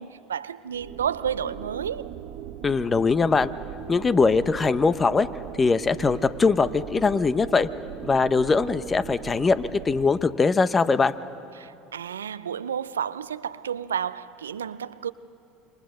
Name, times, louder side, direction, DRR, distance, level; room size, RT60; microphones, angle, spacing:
voice 1, 0.0-2.1 11.6-15.1, right 8 dB, 90° right, 0.5 m, -31 dB
sound 1, 0.7-10.1, right 10 dB, 65° right, 1.5 m, -39 dB
voice 2, 2.6-3.5 3.9-5.3 5.6-7.7 8.0-11.1, left 4 dB, 25° left, 0.9 m, -21 dB
27.0 x 24.0 x 6.5 m
hypercardioid pair, 80°, 0 cm